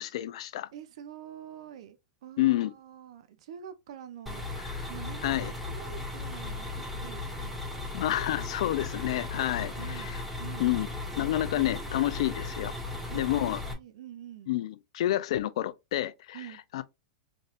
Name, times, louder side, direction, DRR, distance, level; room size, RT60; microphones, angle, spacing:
voice 1, 0.0-0.7 2.4-2.7 5.2-5.5 7.9-10.2 10.6-10.9 11.2-12.7 13.1-13.6 14.5-16.4 16.7-16.8, left 14 dB, 70° left, 0.5 m, -29 dB
voice 2, 0.7-4.5 4.8-7.6 9.8-11.0 11.5-12.2 13.1-14.5 16.3-16.6, right 10 dB, 75° right, 0.8 m, -47 dB
sound 1, 4.3-13.7, left 2 dB, 5° right, 1.9 m, -36 dB
4.1 x 3.7 x 2.5 m
hypercardioid pair, 120°, 3 cm